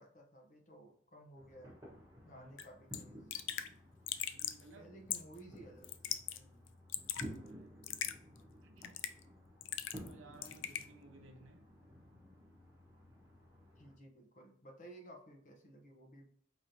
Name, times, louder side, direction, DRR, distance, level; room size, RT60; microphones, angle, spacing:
voice 1, 0.0-1.8 2.3-3.3 4.8-6.7 13.8-16.2, right 1 dB, 40° left, 0.8 m, -56 dB
sound 1, 1.3-13.9, equal, 15° right, 1.0 m, -54 dB
Raindrop / Drip, 2.6-2.7 2.9-3.0 3.3-3.7 4.1-4.6 5.1-5.4 5.8-6.4 6.7-7.3 7.8-8.1 8.8-9.2 9.6-10.1 10.4-10.8, left 11 dB, 65° left, 0.3 m, -39 dB
voice 2, 4.3-4.9 7.2-7.8 8.6-9.0 9.9-11.7, right 2 dB, 80° right, 0.7 m, -59 dB
4.8 x 3.0 x 2.6 m
head